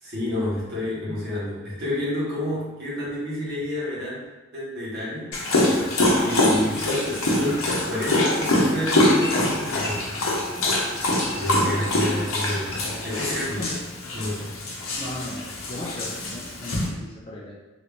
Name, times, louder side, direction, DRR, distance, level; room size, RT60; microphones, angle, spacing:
voice 1, 0.0-4.2 4.5-5.3 6.2-10.0 11.3-13.8 14.1-14.5, left 1 dB, 50° right, -7 dB, 1.2 m, -29 dB
Dog, 5.3-16.9, left 1 dB, 85° left, 0.8 m, -24 dB
voice 2, 15.0-17.5, left 1 dB, 25° left, -5 dB, 0.4 m, -36 dB
2.9 x 2.6 x 3.5 m, 1.1 s
head